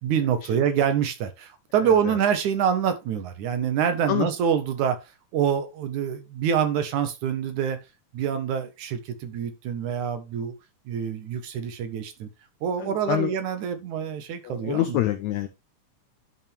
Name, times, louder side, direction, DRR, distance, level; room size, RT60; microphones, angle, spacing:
voice 1, 0.0-5.0 5.3-7.8 8.1-10.5 10.9-12.3 12.6-15.0, right 8 dB, 65° right, 2.6 m, -26 dB
voice 2, 1.8-2.2 4.1-4.3 12.8-13.3 14.4-15.5, left 13 dB, 80° left, 1.7 m, -26 dB
11.0 x 5.4 x 3.4 m
omnidirectional pair, 4.0 m